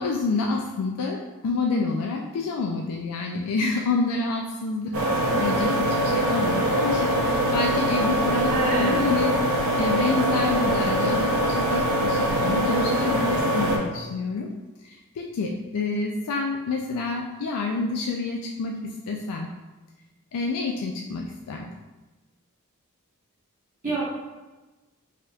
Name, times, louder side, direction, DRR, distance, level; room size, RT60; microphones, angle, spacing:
voice 1, 0.0-4.9 5.4-8.5 8.8-14.5 14.8-19.5 20.3-21.7, left 3 dB, 80° left, 0 dB, 0.4 m, -28 dB
sound 1, 4.9-13.8, right 1 dB, 65° right, 0.7 m, -23 dB
voice 2, 5.0-5.4 8.5-9.1 23.8-24.1, right 1 dB, 35° right, -9 dB, 1.3 m, -29 dB
4.9 x 2.9 x 2.3 m, 1.2 s
head